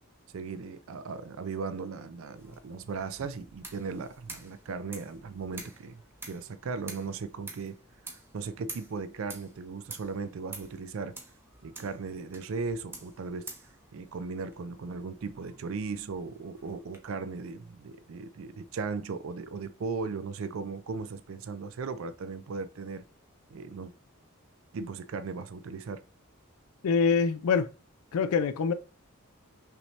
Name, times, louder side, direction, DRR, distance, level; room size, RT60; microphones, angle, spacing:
voice 1, 0.3-7.8 8.1-11.2 11.6-13.5 13.9-23.0 23.5-23.9 24.7-26.0, right 4 dB, 65° right, 0.4 m, -37 dB
sound 1, 2.3-17.0, right 2 dB, 10° right, 0.8 m, -49 dB
voice 2, 26.8-27.7 28.1-28.7, left 5 dB, 85° left, 0.4 m, -24 dB
5.7 x 2.7 x 3.2 m
head